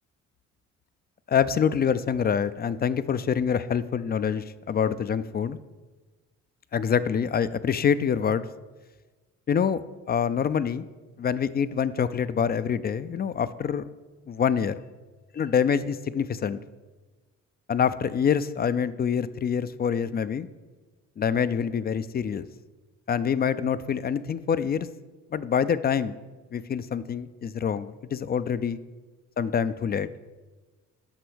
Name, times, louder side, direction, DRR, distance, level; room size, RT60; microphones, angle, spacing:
voice 1, 1.3-5.6 6.7-8.5 9.5-9.8 10.1-10.8 11.2-13.9 14.3-14.8 15.4-16.6 17.7-20.5 21.2-22.5 23.1-24.9 25.3-26.2 26.5-28.8 29.4-30.1, left 7 dB, 35° left, 15 dB, 0.4 m, -26 dB
8.1 x 6.0 x 6.2 m, 1.3 s
cardioid pair, 90°, 30 cm